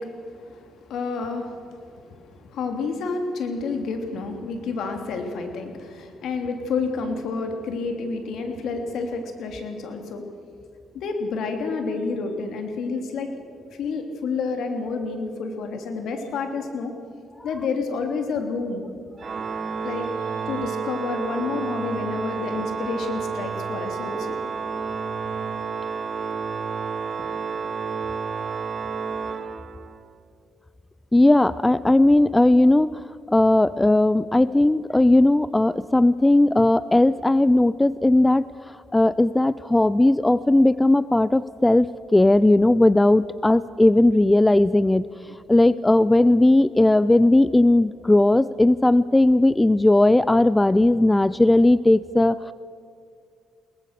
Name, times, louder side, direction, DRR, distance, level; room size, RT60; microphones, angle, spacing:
voice 1, 0.0-10.3 10.9-13.3 13.7-16.9 17.4-18.8 19.8-24.4, left 4 dB, 75° left, 5 dB, 3.0 m, -29 dB
Organ, 19.2-30.1, right 5 dB, 45° right, 1.3 m, -30 dB
voice 2, 31.1-38.5 38.9-45.1 45.5-52.5, left 1 dB, 10° left, 17 dB, 0.5 m, -17 dB
22.0 x 19.0 x 6.7 m, 2.3 s
cardioid pair, 90°, 0 cm